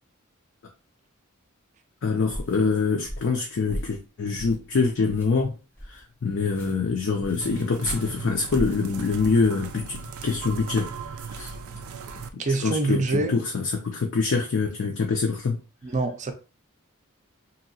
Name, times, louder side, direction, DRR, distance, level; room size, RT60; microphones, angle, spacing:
voice 1, 2.0-5.5 5.9-10.9 11.3-11.5 12.6-15.6, left 4 dB, 60° left, 0.5 m, -25 dB
sound 1, 2.3-2.6 3.0-3.4 3.7-4.0 4.3-4.7 5.0-5.3 5.7-6.0 6.5-6.7 7.2-7.4 7.8-8.1 8.5-8.8 9.2-9.4 9.9-10.1, equal, 10° left, 0.7 m, -37 dB
sound 2, 7.4-12.3, right 5 dB, 90° right, 0.4 m, -38 dB
voice 2, 12.4-13.4 15.8-16.3, right 3 dB, 35° right, 0.5 m, -25 dB
2.9 x 2.7 x 2.7 m
head